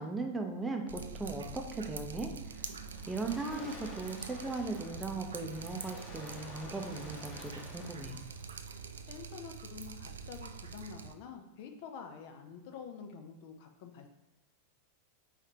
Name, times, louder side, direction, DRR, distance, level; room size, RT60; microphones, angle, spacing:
voice 1, 0.0-2.3 3.1-8.2, right 3 dB, 10° right, 3 dB, 0.6 m, -38 dB
Drip, 0.9-11.1, right 5 dB, 70° right, 0.3 m, -45 dB
Waves surf, 2.5-9.3, left 2 dB, 20° left, 1.3 m, -52 dB
voice 2, 9.1-14.1, left 6 dB, 50° left, 5 dB, 0.5 m, -47 dB
4.8 x 3.2 x 2.9 m, 0.98 s
figure-of-eight pair, 90°, 0 cm